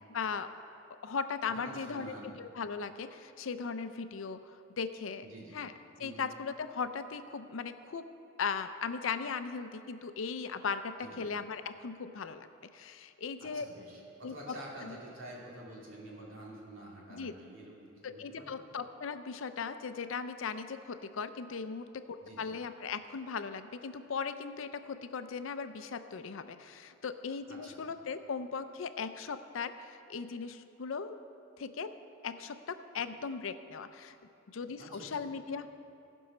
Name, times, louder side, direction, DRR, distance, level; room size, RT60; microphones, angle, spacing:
voice 1, 0.1-0.5 1.0-4.5 4.8-5.3 5.5-5.7 6.0-8.0 8.4-12.5 12.7-13.7 14.2-14.5 14.8-15.0 17.1-17.3 18.0-31.2 31.6-31.9 32.2-34.2 34.5-35.7, left 5 dB, 80° left, 11 dB, 0.5 m, -38 dB
voice 2, 1.5-2.3 5.2-5.6 6.0-6.3 11.0-11.3 13.4-18.5 22.2-22.5 27.5-27.8 34.8-35.3, right 1 dB, 80° right, -4 dB, 2.6 m, -48 dB
16.0 x 5.4 x 6.1 m, 2.7 s
head